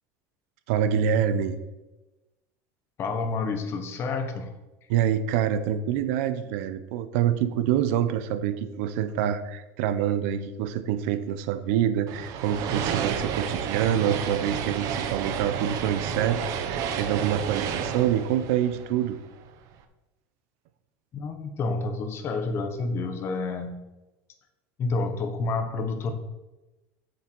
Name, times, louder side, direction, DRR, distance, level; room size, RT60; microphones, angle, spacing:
voice 1, 0.7-1.6 4.9-19.2, right 9 dB, 75° right, 11 dB, 0.9 m, -26 dB
voice 2, 3.0-4.5 21.1-23.8 24.8-26.1, left 3 dB, 35° left, 6 dB, 1.4 m, -29 dB
sound 1, 12.1-19.5, right 7 dB, 50° right, 1.0 m, -31 dB
7.4 x 7.0 x 6.2 m, 1.0 s
cardioid pair, 150°, 8 cm